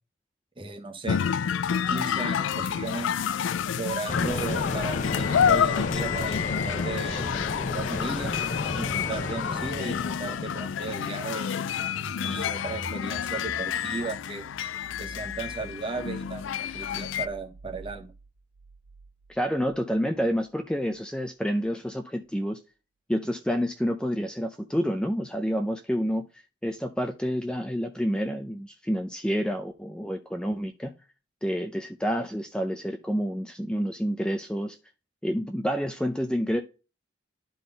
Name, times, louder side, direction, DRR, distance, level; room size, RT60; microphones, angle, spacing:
voice 1, 0.6-1.2 1.9-3.1 3.7-8.3 8.7-11.6 12.3-14.5 15.0-18.1, right 3 dB, 25° right, 1.2 m, -36 dB
sound 1, 1.1-17.3, left 8 dB, 70° left, 0.3 m, -29 dB
sound 2, 4.1-10.7, left 3 dB, 40° left, 0.8 m, -32 dB
sound 3, 11.4-20.1, right 2 dB, 75° right, 1.1 m, -46 dB
voice 2, 19.3-22.6 23.1-31.0 31.4-34.8 35.2-36.6, equal, 5° left, 0.5 m, -28 dB
11.5 x 3.9 x 3.9 m
head